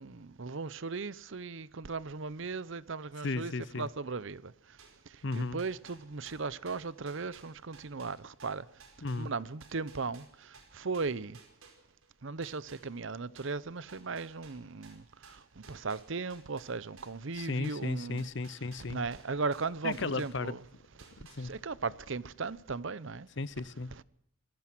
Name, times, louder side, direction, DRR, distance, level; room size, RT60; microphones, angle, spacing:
voice 1, 0.0-4.8 5.1-8.7 9.2-11.4 12.2-18.3 18.9-20.6 21.1-23.3 23.9-24.0, right 4 dB, 65° right, 0.7 m, -37 dB
voice 2, 3.2-3.9 5.2-5.6 9.0-9.3 17.3-19.0 19.8-20.5 21.2-21.5 23.4-23.9, left 3 dB, 55° left, 0.7 m, -35 dB
sound 1, 4.8-12.1 12.4-20.7 21.0-21.8, right 5 dB, 80° right, 5.0 m, -57 dB
25.5 x 18.0 x 6.1 m
head